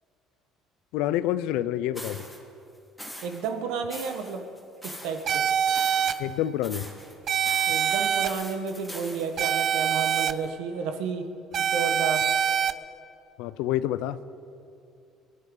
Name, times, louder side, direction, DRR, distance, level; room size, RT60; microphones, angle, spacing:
voice 1, 0.9-2.3 6.2-6.9 13.4-14.3, left 12 dB, 90° left, 15 dB, 0.5 m, -28 dB
sound 1, 1.9-2.4 3.0-3.5 3.9-5.3 5.6-6.4 6.6-7.1 7.4-10.5, equal, ahead, 2.5 m, -42 dB
voice 2, 3.2-4.4 4.8-5.4 7.7-11.3 11.6-12.2, right 6 dB, 85° right, 6 dB, 1.4 m, -31 dB
sound 2, 5.3-6.1 7.3-8.3 9.4-10.3 11.5-12.7, right 8 dB, 40° right, 0.5 m, -24 dB
23.5 x 12.0 x 3.9 m, 2.6 s
cardioid pair, 150°, 0 cm